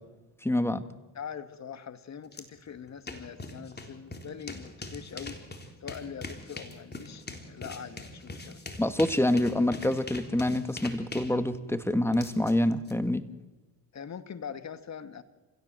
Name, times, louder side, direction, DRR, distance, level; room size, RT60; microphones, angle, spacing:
voice 1, 0.4-0.9 8.8-13.2, left 1 dB, 5° left, 10 dB, 1.9 m, -26 dB
voice 2, 1.1-5.4 5.8-8.6 13.9-15.2, left 7 dB, 50° left, 10 dB, 2.1 m, -42 dB
sound 1, 2.3-2.4 2.7-12.9, left 2 dB, 30° left, 3.7 m, -42 dB
29.0 x 16.5 x 7.7 m, 1.2 s
supercardioid pair, 65°, 35 cm